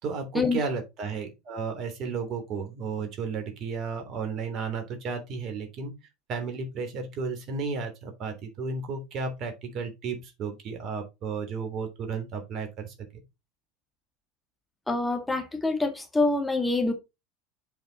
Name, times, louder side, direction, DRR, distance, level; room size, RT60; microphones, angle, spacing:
voice 1, 0.0-5.9 6.3-12.9, right 5 dB, 45° right, 3.2 m, -33 dB
voice 2, 14.9-16.9, left 3 dB, 10° left, 1.9 m, -26 dB
7.2 x 5.7 x 4.1 m
figure-of-eight pair, 75°, 0 cm